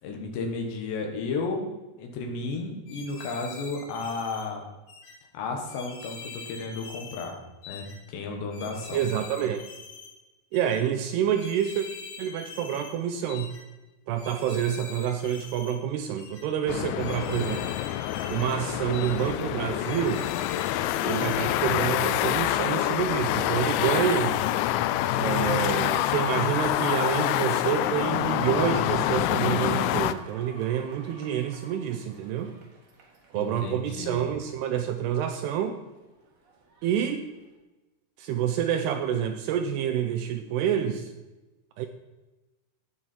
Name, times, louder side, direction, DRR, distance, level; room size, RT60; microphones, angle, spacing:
voice 1, 0.0-4.6 5.3-7.4 7.7-9.0 33.4-34.3, left 3 dB, 75° left, 2 dB, 3.6 m, -33 dB
sound 1, 2.9-4.5 4.9-5.2 5.7-7.3 7.6-8.0 8.5-10.1 10.5-10.8 11.3-13.0 13.3-13.6 14.2-15.8 16.2-16.5 17.0-18.6 18.9-19.3 19.8-21.4 21.8-22.1, left 5 dB, 60° left, 3.9 m, -44 dB
voice 2, 8.9-9.7 10.5-11.9 12.2-13.5 14.1-17.7 18.3-20.3 21.0-24.4 25.1-32.5 33.3-35.8 36.8-37.3 38.2-41.1 41.8-41.9, right 9 dB, 85° right, 7 dB, 2.4 m, -28 dB
sound 2, 16.7-30.1, left 13 dB, 90° left, 2.9 m, -26 dB
sound 3, 27.8-37.6, right 2 dB, 55° right, 2.0 m, -51 dB
16.5 x 6.5 x 4.5 m, 1.1 s
omnidirectional pair, 5.2 m